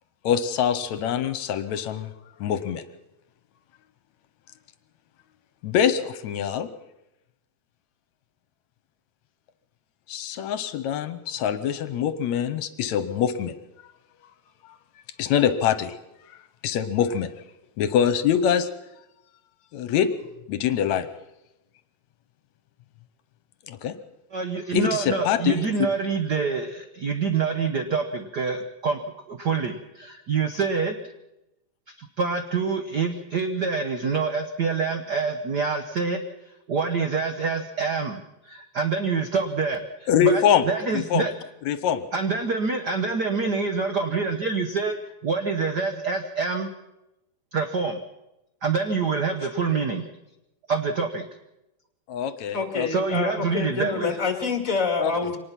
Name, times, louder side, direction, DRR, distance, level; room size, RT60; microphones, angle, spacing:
voice 1, 0.2-2.1 2.4-2.8 5.6-6.7 10.1-13.6 15.2-15.9 16.6-17.3 17.8-18.7 19.7-20.1 20.5-21.1 23.7-24.0 24.7-25.6 40.1-40.6 40.9-41.3 41.7-42.0 52.1-52.9 55.0-55.1, left 8 dB, 75° left, 12 dB, 2.2 m, -24 dB
voice 2, 24.3-29.0 29.3-30.9 32.0-36.2 36.7-41.3 42.1-45.0 45.2-46.7 47.5-48.0 48.6-50.1 50.7-51.2 52.9-54.2, right 5 dB, 60° right, 6 dB, 1.1 m, -26 dB
voice 3, 52.5-55.4, left 4 dB, 30° left, 5 dB, 2.2 m, -27 dB
24.0 x 19.0 x 5.9 m, 0.91 s
omnidirectional pair, 3.4 m